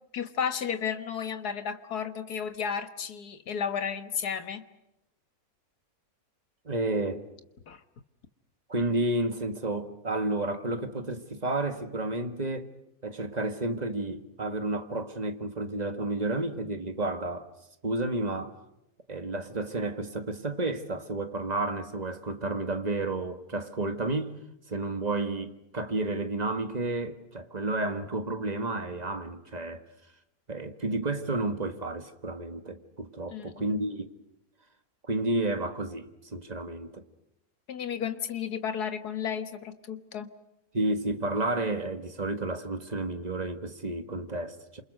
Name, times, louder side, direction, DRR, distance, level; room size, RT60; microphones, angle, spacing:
voice 1, 0.1-4.6 7.7-7.8 33.3-33.8 37.7-40.3, left 7 dB, 85° left, 2.0 m, -33 dB
voice 2, 6.7-7.2 8.7-12.7 13.0-17.5 17.8-18.6 19.1-24.4 24.7-29.8 30.5-34.1 35.1-37.0 40.7-44.8, right 2 dB, 25° right, 1.8 m, -31 dB
28.5 x 27.0 x 6.6 m
omnidirectional pair, 1.6 m